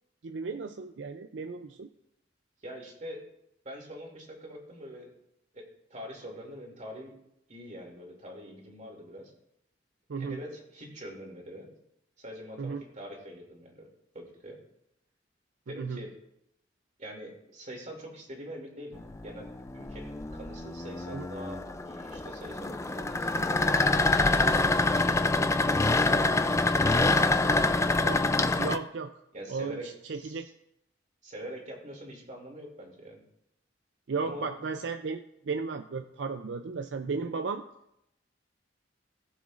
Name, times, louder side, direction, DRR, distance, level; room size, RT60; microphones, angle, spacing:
voice 1, 0.2-1.9 10.1-10.4 12.6-12.8 15.7-16.0 21.1-21.3 28.0-28.2 28.6-29.1 29.5-30.5 34.1-37.6, right 4 dB, 75° right, 7 dB, 0.5 m, -35 dB
voice 2, 2.6-3.3 3.6-5.1 5.5-7.2 7.5-9.3 10.2-11.7 12.2-13.9 14.1-14.6 15.7-16.1 17.0-28.1 29.3-30.4 31.2-33.2 34.2-34.5, equal, 40° right, 0 dB, 2.7 m, -44 dB
sound 1, 19.0-28.8, left 2 dB, 15° left, 0.4 m, -26 dB
19.0 x 7.2 x 2.5 m, 0.80 s
head